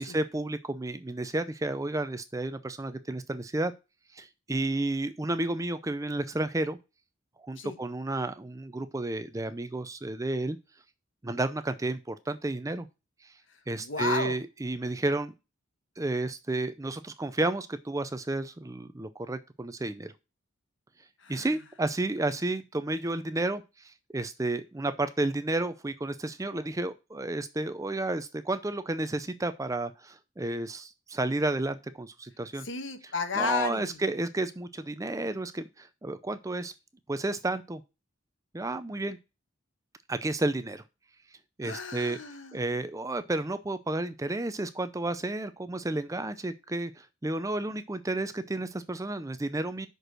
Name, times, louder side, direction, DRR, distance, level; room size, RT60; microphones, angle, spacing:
voice 1, 0.0-3.7 4.1-6.8 7.4-10.6 11.2-12.9 13.7-15.3 16.0-20.1 21.3-32.7 33.4-36.7 37.1-37.8 38.5-39.2 40.1-40.8 41.6-42.2 42.5-49.9, right 2 dB, 15° right, 0.5 m, -31 dB
voice 2, 13.5-14.4 21.2-21.5 32.6-34.0 41.6-42.8, left 4 dB, 65° left, 1.3 m, -33 dB
6.2 x 5.3 x 6.3 m
head